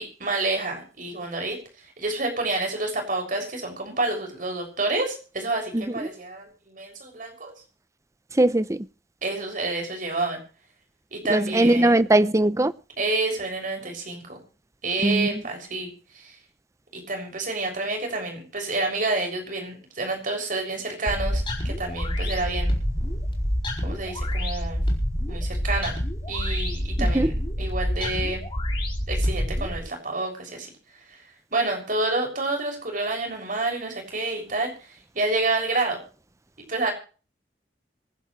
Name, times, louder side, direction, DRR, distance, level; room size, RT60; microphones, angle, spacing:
voice 1, 0.0-7.5 9.2-10.4 11.1-12.0 13.0-14.4 14.8-16.4 16.9-22.7 23.8-24.8 25.3-25.9 26.3-28.4 29.1-30.7 31.1-31.2 31.5-36.0 36.7-36.9, right 2 dB, 50° right, 6.9 m, -29 dB
voice 2, 5.7-6.1 8.3-8.9 11.3-12.7 15.0-15.3 27.1-27.3, right 1 dB, 15° right, 0.6 m, -20 dB
sound 1, 21.1-29.8, equal, 30° left, 4.7 m, -27 dB
26.0 x 11.5 x 3.3 m
head